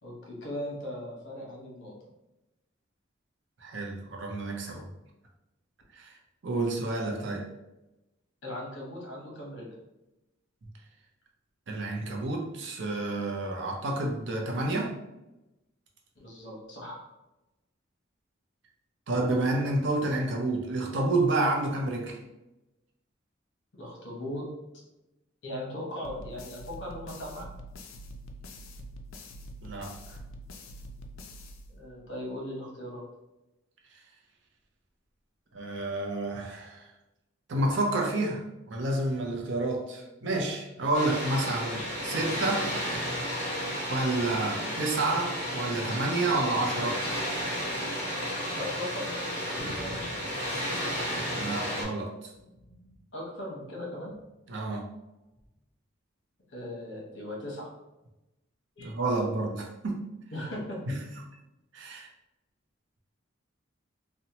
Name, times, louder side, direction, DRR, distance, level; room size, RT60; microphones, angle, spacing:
voice 1, 0.0-1.9 8.4-9.7 16.2-17.0 23.8-24.5 25.4-27.5 31.7-33.0 48.5-49.9 53.1-54.1 56.5-57.7 58.8-58.9 60.3-60.9, left 1 dB, 60° left, -3 dB, 0.9 m, -38 dB
voice 2, 3.6-4.9 5.9-6.2 6.4-7.5 11.7-15.0 19.1-22.2 29.6-30.2 35.5-36.9 37.5-42.7 43.9-47.0 51.3-52.3 54.5-54.9 58.8-60.0 60.9-61.0 61.7-62.1, right 2 dB, 65° right, 1 dB, 0.5 m, -29 dB
sound 1, 26.0-32.2, equal, 85° left, 0.3 m, -45 dB
Water, 40.9-51.8, equal, 35° left, 1.0 m, -33 dB
sound 2, 49.6-51.8 52.2-53.1 54.0-54.3 55.3-55.5, right 1 dB, 20° left, 0.5 m, -47 dB
2.8 x 2.1 x 2.8 m, 0.96 s
head